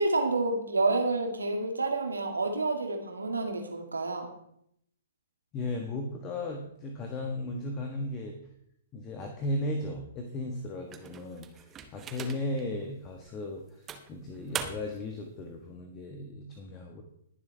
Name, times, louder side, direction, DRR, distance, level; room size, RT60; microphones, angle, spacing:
voice 1, 0.0-4.3, right 3 dB, 75° right, 3 dB, 2.2 m, -29 dB
voice 2, 5.5-8.4 8.9-11.6 11.9-13.6 14.1-17.0, left 1 dB, 25° left, 3 dB, 1.4 m, -35 dB
sound 1, 10.9-12.6 13.2-13.3 13.9-15.1, right 7 dB, 20° right, 1.0 m, -40 dB
21.0 x 7.3 x 3.4 m, 0.72 s
figure-of-eight pair, 115°, 0 cm